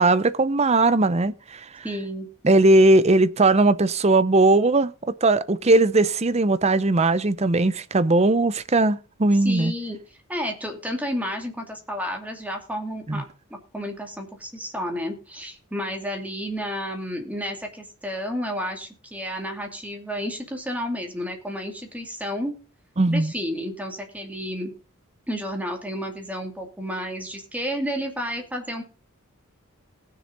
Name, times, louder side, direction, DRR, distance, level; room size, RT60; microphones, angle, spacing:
voice 1, 0.0-1.8 2.4-4.9 5.2-9.7 13.1-13.2 23.0-23.3, right 2 dB, 30° right, 0.6 m, -19 dB
voice 2, 1.8-2.3 9.4-22.5 23.1-24.7 25.3-28.8, equal, 5° right, 2.5 m, -31 dB
19.5 x 6.8 x 4.0 m
head